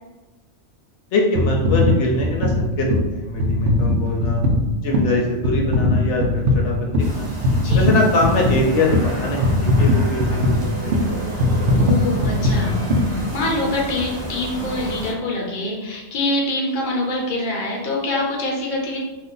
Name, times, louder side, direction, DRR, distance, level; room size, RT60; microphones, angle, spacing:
voice 1, 1.1-4.4 4.8-7.3 7.7-11.5, left 2 dB, 75° left, 0 dB, 0.9 m, -23 dB
sound 1, 1.4-13.8 14.3-14.4, left 1 dB, 70° right, 0.8 m, -20 dB
sound 2, 7.0-15.1, right 1 dB, 40° right, 0.8 m, -29 dB
voice 2, 7.6-7.9 11.8-12.8 13.1-19.0, left 2 dB, 45° left, -2 dB, 0.8 m, -25 dB
2.5 x 2.5 x 3.7 m, 1.1 s
omnidirectional pair, 1.2 m